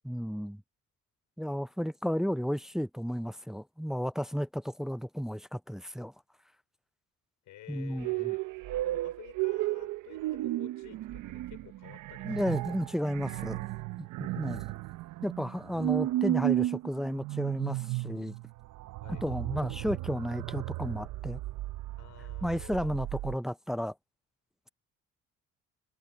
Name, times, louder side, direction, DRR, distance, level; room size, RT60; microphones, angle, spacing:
voice 1, 0.0-0.6 1.4-6.1 7.7-8.1 12.2-13.7 14.2-14.6 15.2-18.3 19.1-21.4 22.4-23.9, equal, ahead, 0.3 m, -33 dB
voice 2, 7.4-8.4 8.8-12.8 19.0-19.2 22.0-22.9, left 14 dB, 85° left, 4.8 m, -52 dB
sound 1, 8.0-23.4, right 16 dB, 90° right, 0.7 m, -34 dB
cardioid pair, 90°, 30 cm